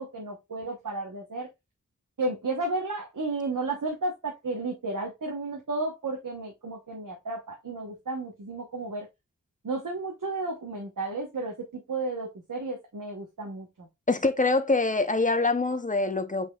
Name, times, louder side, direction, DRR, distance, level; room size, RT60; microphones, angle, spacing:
voice 1, 0.0-1.5 2.2-9.1 9.6-13.9, right 2 dB, 85° right, 1.1 m, -33 dB
voice 2, 14.1-16.5, left 3 dB, 25° left, 0.7 m, -24 dB
5.2 x 4.3 x 2.3 m
wide cardioid pair, 60°, 31 cm